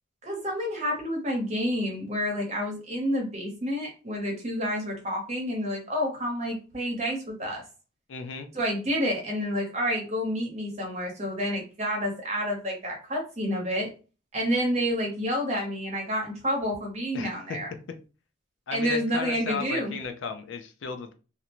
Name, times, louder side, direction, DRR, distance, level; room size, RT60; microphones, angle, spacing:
voice 1, 0.2-7.6 8.5-13.9 14.3-17.7 18.7-19.9, equal, 35° right, 0 dB, 0.9 m, -29 dB
voice 2, 8.1-8.5 17.1-17.3 18.7-21.1, left 5 dB, 70° left, 7 dB, 0.4 m, -35 dB
2.5 x 2.1 x 2.9 m, 0.34 s
head